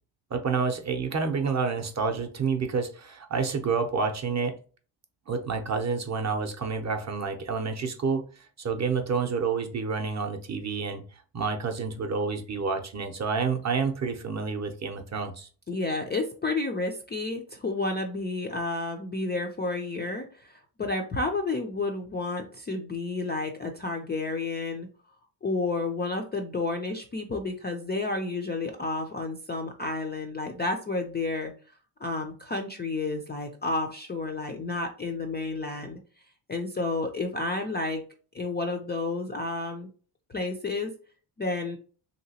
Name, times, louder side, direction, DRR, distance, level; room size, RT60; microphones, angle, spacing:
voice 1, 0.3-4.6 5.3-8.3 8.6-11.0 11.3-15.5, right 5 dB, 35° right, 6 dB, 0.6 m, -29 dB
voice 2, 15.7-24.9 25.4-31.5 32.0-36.0 36.5-38.0 38.3-39.9 40.3-40.9 41.4-41.8, left 3 dB, 25° left, 3 dB, 0.3 m, -31 dB
3.1 x 2.8 x 2.8 m, 0.39 s
cardioid pair, 110°, 49 cm